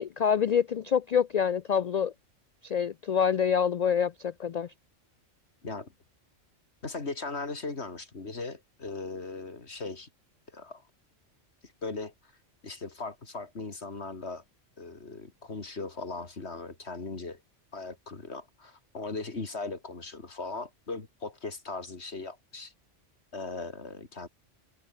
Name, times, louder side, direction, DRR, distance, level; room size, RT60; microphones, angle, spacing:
voice 1, 0.0-2.1 2.6-4.7, left 7 dB, 85° left, 0.3 m, -26 dB
voice 2, 6.8-10.1 10.5-10.8 11.8-12.1 12.6-14.4 14.8-17.4 17.7-22.7 23.3-24.3, left 3 dB, 60° left, 3.0 m, -38 dB
omnidirectional pair, 1.3 m